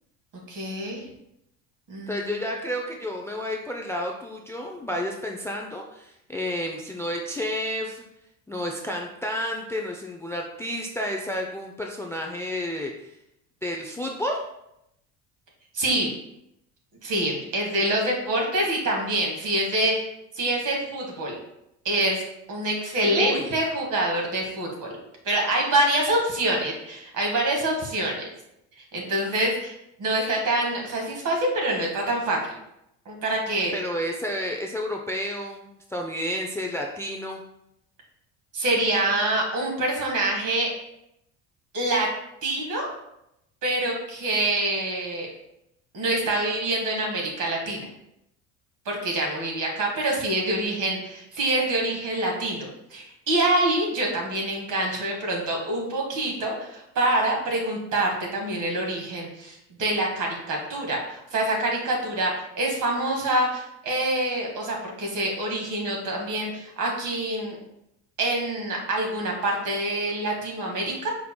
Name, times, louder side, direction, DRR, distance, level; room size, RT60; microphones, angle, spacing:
voice 1, 0.5-1.0 1.9-2.3 15.7-16.1 17.0-20.1 20.4-21.4 21.9-22.2 22.5-24.9 25.3-28.3 28.9-32.4 33.1-33.7 38.5-40.7 41.7-42.1 42.4-42.9 43.6-45.3 45.9-47.9 48.9-67.6 68.2-71.1, right 1 dB, 50° right, 0 dB, 1.8 m, -26 dB
voice 2, 2.1-8.0 8.5-13.1 13.6-14.4 23.1-23.5 33.7-37.4, left 1 dB, 5° left, 1 dB, 0.4 m, -31 dB
5.0 x 4.5 x 2.2 m, 0.81 s
supercardioid pair, 85°, 39 cm